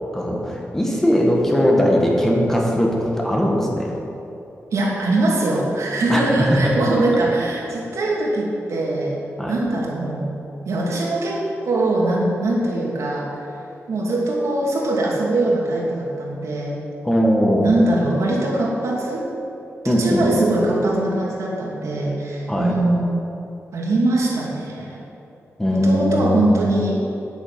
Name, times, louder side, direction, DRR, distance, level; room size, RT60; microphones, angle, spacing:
voice 1, 0.1-3.9 6.1-6.8 9.4-9.6 17.0-17.7 19.8-20.5 22.5-22.7 25.6-26.5, equal, 5° left, -1 dB, 1.5 m, -19 dB
voice 2, 4.7-9.2 9.5-10.3 10.7-13.3 13.9-16.8 17.6-19.3 19.8-23.0 23.7-25.0 25.7-27.0, right 2 dB, 80° right, -3 dB, 2.6 m, -22 dB
9.8 x 9.1 x 7.4 m, 2.9 s
wide cardioid pair, 165°, 5 cm